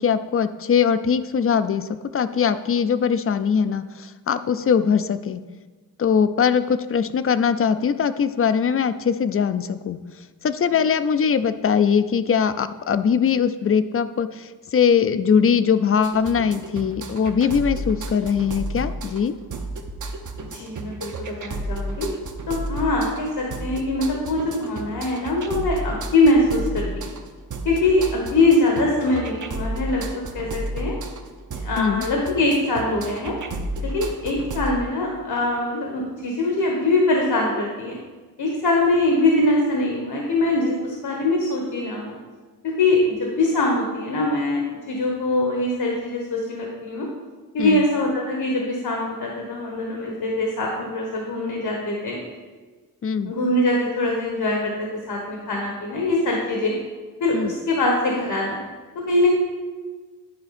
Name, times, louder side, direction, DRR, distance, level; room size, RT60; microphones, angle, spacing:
voice 1, 0.0-5.4 6.0-10.0 10.4-19.3 31.8-32.0 47.6-47.8 53.0-53.3 57.3-57.5, left 7 dB, 40° left, 12 dB, 0.4 m, -21 dB
sound 1, 16.0-34.7, right 1 dB, 50° right, 0.8 m, -32 dB
voice 2, 20.5-22.1 22.5-27.1 27.6-30.1 30.3-30.5 30.7-31.0 31.6-33.3 33.8-38.0 38.4-42.1 42.6-44.6 44.9-47.1 47.5-52.2 53.2-56.7 57.2-58.6 58.9-59.3, left 2 dB, 80° left, 0 dB, 1.4 m, -22 dB
10.5 x 4.8 x 4.2 m, 1.4 s
wide cardioid pair, 100°, 37 cm